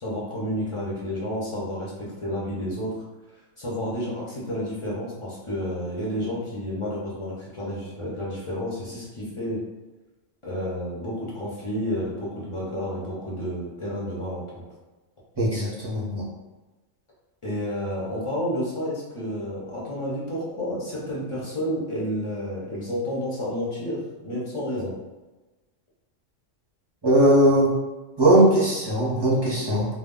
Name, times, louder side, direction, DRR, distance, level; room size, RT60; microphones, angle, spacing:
voice 1, 0.0-3.0 3.6-9.6 10.4-14.6 17.4-25.0, equal, 35° left, -6 dB, 0.5 m, -30 dB
voice 2, 15.4-16.3 27.0-27.7 28.2-29.9, right 1 dB, 25° right, -6 dB, 0.5 m, -19 dB
2.2 x 2.1 x 3.6 m, 1.2 s
omnidirectional pair, 1.4 m